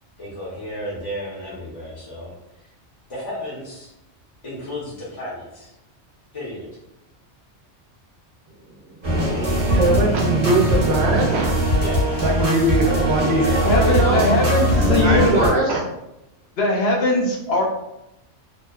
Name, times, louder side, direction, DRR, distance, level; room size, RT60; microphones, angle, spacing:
voice 1, 0.2-2.3 2.6-2.7 3.1-3.9 4.4-5.7 6.3-6.7 11.8-12.0 12.8-13.7, equal, 35° left, -7 dB, 0.6 m, -32 dB
sound 1, 9.0-15.5, equal, 35° right, 0.8 m, -20 dB
voice 2, 9.6-11.6 12.2-14.2 14.9-15.8, right 2 dB, 70° right, 0 dB, 0.8 m, -21 dB
voice 3, 13.6-15.7 16.6-17.6, left 1 dB, 65° left, 0 dB, 0.8 m, -20 dB
2.7 x 2.2 x 2.2 m, 0.89 s
omnidirectional pair, 1.2 m